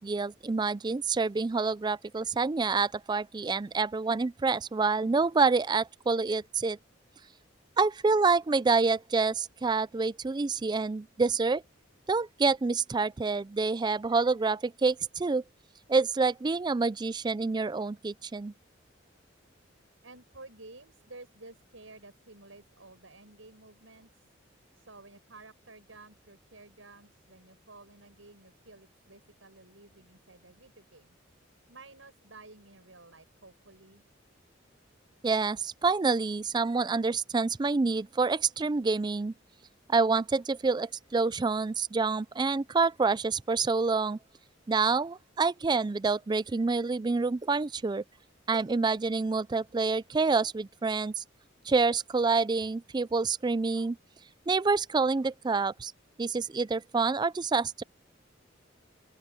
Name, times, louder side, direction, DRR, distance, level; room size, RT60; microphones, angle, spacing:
voice 1, 0.0-6.8 7.8-11.6 12.1-15.4 15.9-18.5 35.2-39.3 39.9-44.2 44.7-48.0 48.5-51.2 51.7-54.0 54.5-55.9 56.2-57.8, right 4 dB, 20° right, 0.4 m, -27 dB
voice 2, 20.0-24.3 24.7-31.2 31.7-34.0, right 2 dB, 85° right, 7.3 m, -52 dB
open air
head